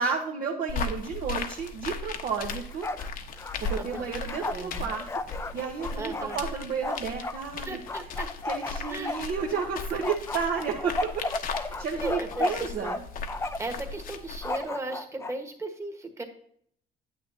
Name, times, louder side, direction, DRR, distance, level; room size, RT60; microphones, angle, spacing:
voice 1, 0.0-2.9 3.6-5.1 5.5-7.8 8.4-11.2 11.6-13.0, right 6 dB, 60° right, 0 dB, 1.1 m, -32 dB
sound 1, 0.7-14.6, left 4 dB, 55° left, 0.9 m, -37 dB
Bark, 2.5-3.1 3.4-7.4 7.9-9.7 10.0-13.0 13.3-13.8 14.4-15.3, left 2 dB, 15° left, 0.5 m, -34 dB
voice 2, 4.5-4.9 6.0-6.4 7.6-8.3 8.9-9.2 11.7-13.0 13.6-16.2, right 2 dB, 15° right, 4 dB, 1.4 m, -37 dB
9.2 x 8.3 x 2.8 m, 0.65 s
cardioid pair, 110°, 17 cm